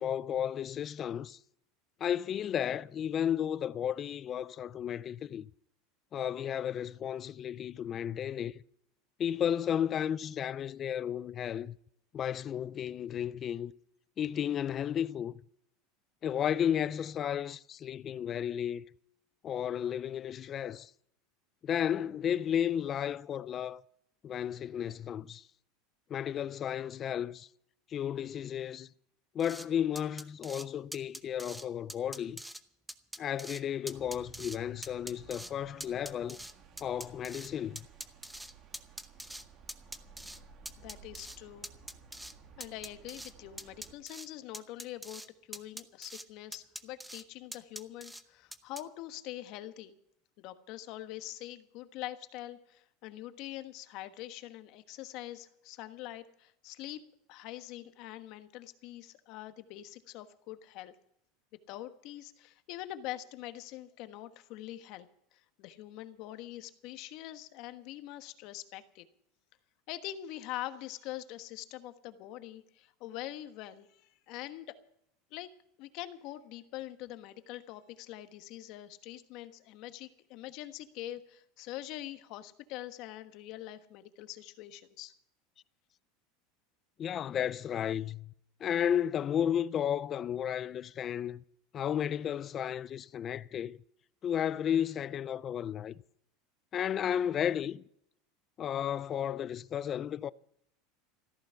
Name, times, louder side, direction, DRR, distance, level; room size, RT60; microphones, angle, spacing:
voice 1, 0.0-1.4 2.0-5.5 6.1-8.6 9.2-11.8 12.1-13.7 14.2-15.4 16.2-18.8 19.4-20.9 21.6-23.8 24.2-25.4 26.1-27.5 27.9-28.9 29.3-32.4 33.2-36.4 36.8-37.8 87.0-88.3 88.6-91.4 91.7-93.8 94.2-96.0 96.7-97.8 98.6-100.3, left 9 dB, 30° left, 0.4 m, -33 dB
sound 1, 29.4-29.7 30.0-30.7 30.9-31.6 31.9-32.6 32.9-33.6 33.9-34.6 34.8-35.5 35.8-37.5 37.8-39.4 39.7-40.4 40.7-41.4 41.6-42.3 42.6-43.3 43.6-44.3 44.5-45.3 45.5-46.2 46.5-47.2 47.5-48.2 48.5-48.8, right 1 dB, 5° right, 0.9 m, -44 dB
sound 2, 33.9-43.9, right 5 dB, 40° right, 2.4 m, -56 dB
voice 2, 40.8-41.7 42.6-45.2 45.5-49.9 50.4-57.0 57.3-61.0 61.7-65.1 65.3-69.1 69.9-74.0 74.3-74.8 75.3-75.5 75.8-85.1, left 14 dB, 55° left, 1.3 m, -44 dB
14.5 x 13.5 x 5.7 m
supercardioid pair, 140°, 0 cm